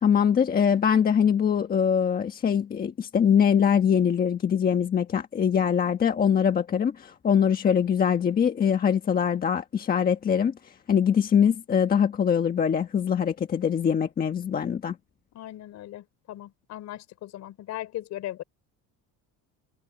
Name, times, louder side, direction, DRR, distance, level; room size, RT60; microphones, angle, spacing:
voice 1, 0.0-14.9, left 7 dB, 25° left, 1.4 m, -23 dB
voice 2, 15.3-18.4, left 13 dB, 50° left, 3.9 m, -38 dB
cardioid pair, 165°, 35 cm